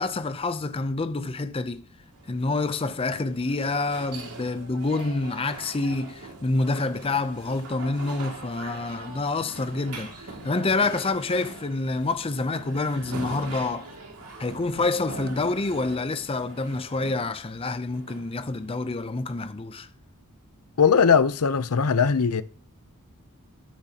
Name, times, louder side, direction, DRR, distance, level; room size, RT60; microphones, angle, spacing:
voice 1, 0.0-1.8 2.3-13.9 14.4-19.9, left 3 dB, 25° left, 0.5 m, -27 dB
sound 1, 2.1-19.2, right 3 dB, 90° right, 2.4 m, -42 dB
voice 2, 20.8-22.4, left 6 dB, 85° left, 0.6 m, -20 dB
13.0 x 10.5 x 2.9 m
head